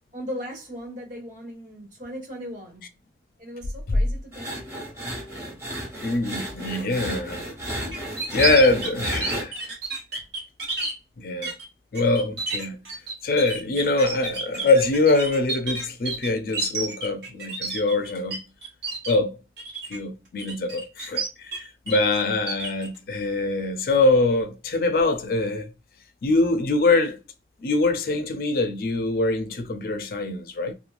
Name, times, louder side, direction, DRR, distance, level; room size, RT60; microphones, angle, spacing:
voice 1, 0.1-2.8 3.4-4.6, equal, 45° right, 1.3 m, -37 dB
sound 1, 4.3-9.4, right 1 dB, 15° right, 1.1 m, -33 dB
voice 2, 6.0-7.4 8.3-9.5 11.2-11.5 11.9-12.8 13.2-18.4 19.1-19.4 19.9-25.7 26.2-27.2 27.6-30.7, left 2 dB, 50° left, 0.4 m, -23 dB
sound 2, 7.9-10.9 11.4-11.6 11.9-18.4 18.6-19.1 19.6-20.0 20.4-21.6 21.9-22.9, right 3 dB, 70° right, 1.2 m, -30 dB
2.9 x 2.2 x 2.5 m
head